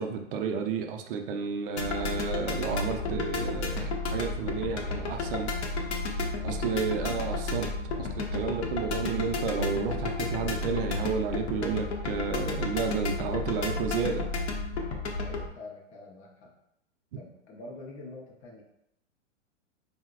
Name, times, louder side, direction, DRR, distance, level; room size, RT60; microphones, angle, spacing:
voice 1, 0.0-5.9 6.4-7.7 8.0-14.2, right 6 dB, 50° right, 5 dB, 0.4 m, -32 dB
sound 1, 1.8-15.5, left 3 dB, 60° left, 0.7 m, -32 dB
voice 2, 15.2-16.5 17.1-18.6, left 2 dB, 20° left, -1 dB, 0.4 m, -45 dB
3.7 x 2.0 x 2.4 m, 0.81 s
hypercardioid pair, 125°, 37 cm